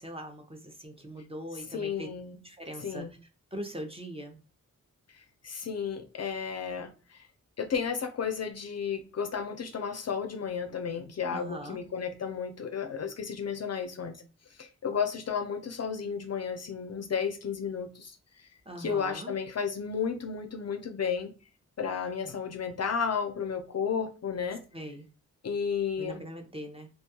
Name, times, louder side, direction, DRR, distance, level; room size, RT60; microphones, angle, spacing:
voice 1, 0.0-2.1 2.4-3.1 3.5-4.4 11.3-11.8 18.7-19.3 24.7-25.1 26.0-26.9, right 1 dB, 15° right, 0.6 m, -41 dB
voice 2, 1.7-2.4 2.8-3.1 5.2-7.2 7.6-14.2 14.6-18.1 18.4-18.5 18.8-21.3 21.8-24.6 25.4-26.2, left 6 dB, 50° left, 0.4 m, -33 dB
2.3 x 2.2 x 2.8 m
cardioid pair, 45°, 33 cm